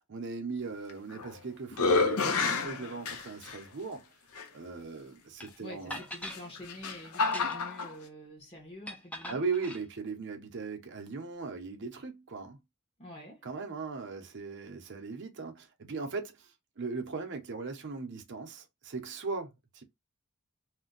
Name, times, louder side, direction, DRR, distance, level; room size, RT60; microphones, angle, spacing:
voice 1, 0.1-4.1 4.5-6.0 9.3-12.6 13.4-19.8, right 4 dB, 55° right, 0.6 m, -38 dB
sound 1, 0.9-1.4 1.7-3.6 4.4-4.5 6.2-7.9, left 4 dB, 80° left, 0.6 m, -29 dB
sound 2, 5.4-5.5 5.9-6.4 7.2-7.8 8.9-9.8, left 1 dB, 5° left, 0.4 m, -41 dB
voice 2, 5.6-9.4 13.0-13.4, left 1 dB, 25° left, 0.9 m, -47 dB
2.5 x 2.2 x 3.8 m
head